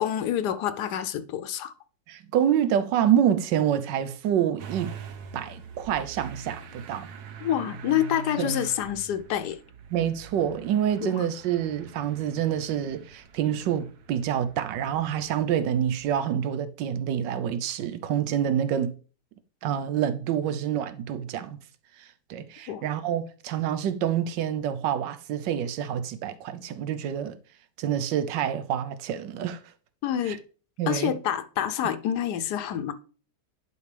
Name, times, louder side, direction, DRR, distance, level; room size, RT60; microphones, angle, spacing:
voice 1, 0.0-1.7 7.4-9.6 11.0-11.3 22.7-22.8 30.0-30.4 30.9-32.9, left 10 dB, 75° left, 1.1 m, -27 dB
voice 2, 2.1-4.9 5.3-7.1 8.4-8.6 9.9-18.9 19.6-21.6 22.0-27.4 27.8-29.6 30.3-30.4 30.8-31.1, right 9 dB, 85° right, 1.3 m, -27 dB
Motor vehicle (road) / Engine starting, 4.6-16.2, right 5 dB, 70° right, 1.3 m, -44 dB
11.0 x 4.6 x 3.3 m
omnidirectional pair, 1.9 m